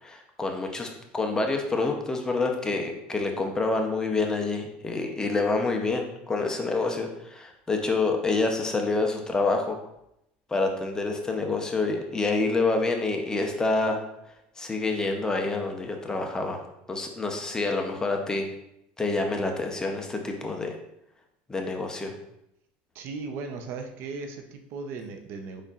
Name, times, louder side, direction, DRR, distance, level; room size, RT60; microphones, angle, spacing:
voice 1, 0.0-9.8 10.5-14.0 14.6-16.6 16.9-18.4 19.0-20.8 21.5-22.1, left 3 dB, 15° left, 3 dB, 0.7 m, -27 dB
voice 2, 22.9-25.6, right 4 dB, 60° right, 5 dB, 0.6 m, -37 dB
5.0 x 4.2 x 2.4 m, 0.82 s
supercardioid pair, 115°, 5 cm